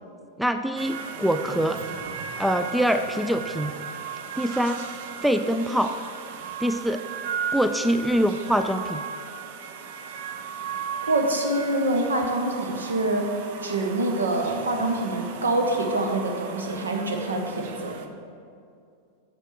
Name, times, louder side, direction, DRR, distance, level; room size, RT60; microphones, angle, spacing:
voice 1, 0.4-1.8 2.4-3.7 4.4-4.8 5.2-5.9 6.6-7.0 7.5-9.0, equal, ahead, 8 dB, 0.3 m, -24 dB
sound 1, 0.8-18.1, right 6 dB, 50° right, 0.6 m, -36 dB
voice 2, 11.0-13.3 13.6-17.9, right 2 dB, 70° right, 3 dB, 1.0 m, -25 dB
9.7 x 7.0 x 3.3 m, 2.4 s
figure-of-eight pair, 90°, 0 cm